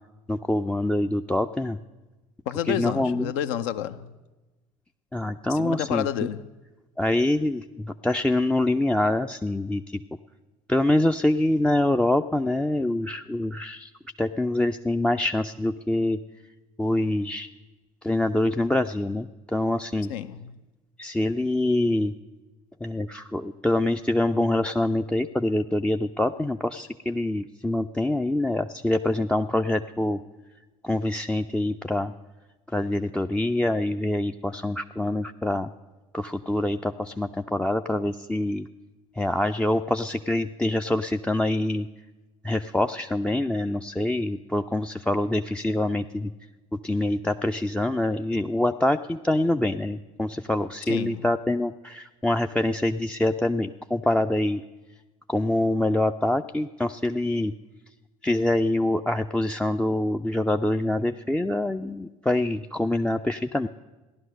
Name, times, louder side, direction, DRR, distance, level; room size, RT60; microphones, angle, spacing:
voice 1, 0.3-1.8 2.7-3.3 5.1-6.1 7.0-10.0 10.7-13.9 14.2-16.2 16.8-17.5 18.0-20.1 21.0-22.1 22.8-30.2 30.8-32.1 32.7-35.7 36.1-38.7 39.2-41.9 42.4-46.3 46.7-54.6 55.3-57.5 58.2-63.7, left 1 dB, 5° left, 6 dB, 0.4 m, -25 dB
voice 2, 2.5-4.1 5.5-6.4 20.1-20.5 50.9-51.2, left 10 dB, 65° left, 11 dB, 0.7 m, -30 dB
16.0 x 11.0 x 6.4 m, 1.2 s
hypercardioid pair, 65°, 19 cm